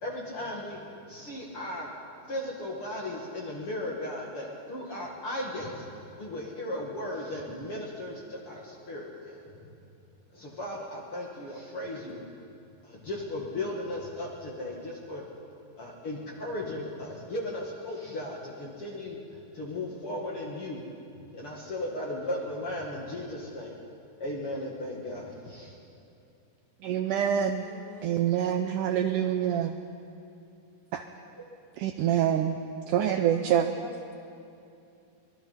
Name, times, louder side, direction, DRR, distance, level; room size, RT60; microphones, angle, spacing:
voice 1, 0.0-1.9 2.2-9.7 10.3-12.2 12.8-15.3 15.8-19.2 19.5-20.8 21.3-23.8 24.2-25.8, left 1 dB, 45° left, 2.7 m, -36 dB
voice 2, 26.8-27.7 28.0-29.8 30.9-31.0 31.8-32.6 32.9-33.7, right 10 dB, 75° right, 2.1 m, -26 dB
voice 3, 27.6-28.2 28.7-29.6 32.3-32.4 33.4-33.9, equal, 25° left, 1.2 m, -45 dB
25.0 x 20.0 x 5.8 m
omnidirectional pair, 4.1 m